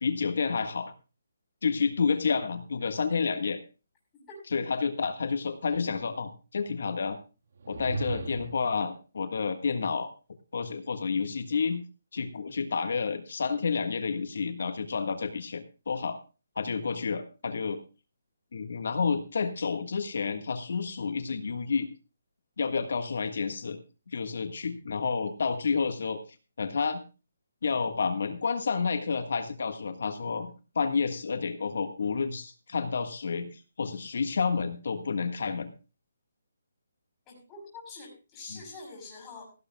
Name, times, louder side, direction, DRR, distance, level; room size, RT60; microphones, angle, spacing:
voice 1, 0.0-0.9 1.6-3.6 4.5-7.2 7.7-10.1 10.5-11.8 12.1-16.2 16.5-17.8 18.5-21.9 22.6-23.8 24.1-26.2 26.6-27.0 27.6-30.5 30.7-35.7 38.5-38.6, left 5 dB, 60° left, 8 dB, 1.5 m, -30 dB
sound 1, 7.6-8.7, right 4 dB, 55° right, 2.0 m, -36 dB
voice 2, 37.3-39.5, left 3 dB, 15° left, -2 dB, 6.2 m, -45 dB
16.5 x 15.5 x 2.3 m, 0.32 s
hypercardioid pair, 170°, 0 cm